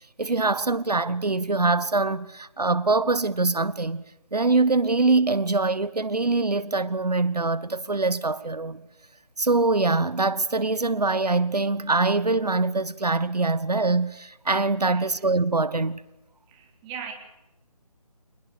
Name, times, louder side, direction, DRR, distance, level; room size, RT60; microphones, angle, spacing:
voice 1, 0.2-4.0 4.3-8.8 9.4-16.0, right 3 dB, 90° right, 1.2 m, -23 dB
voice 2, 16.5-17.1, right 7 dB, 15° right, 2.9 m, -39 dB
26.5 x 20.5 x 7.0 m
figure-of-eight pair, 160°, 20 cm